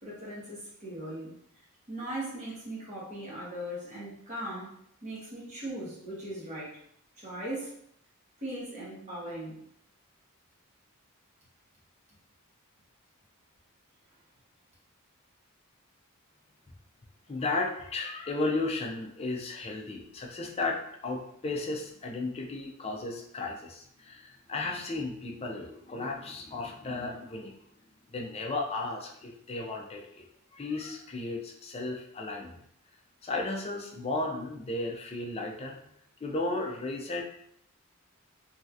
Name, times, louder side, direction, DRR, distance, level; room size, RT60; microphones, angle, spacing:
voice 1, 0.0-1.3 1.9-4.7 5.0-6.8 7.2-7.7 8.4-9.6, right 1 dB, 35° right, -7 dB, 1.2 m, -39 dB
voice 2, 17.3-27.6 28.1-30.2 30.5-32.6 33.2-35.8 36.2-37.2, left 2 dB, 30° left, 1 dB, 0.4 m, -34 dB
3.1 x 2.7 x 2.4 m, 0.69 s
head